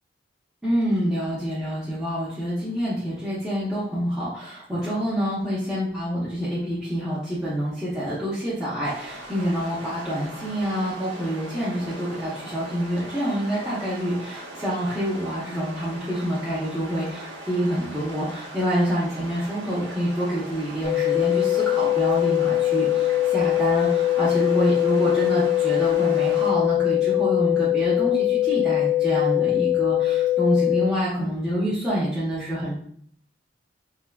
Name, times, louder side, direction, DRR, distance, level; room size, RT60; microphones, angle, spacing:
voice 1, 0.6-32.8, equal, 5° right, -11 dB, 0.6 m, -27 dB
sound 1, 8.8-26.5, right 1 dB, 75° right, 1.0 m, -40 dB
sound 2, 20.8-30.8, left 15 dB, 55° left, 0.5 m, -22 dB
3.5 x 2.4 x 2.2 m, 0.63 s
head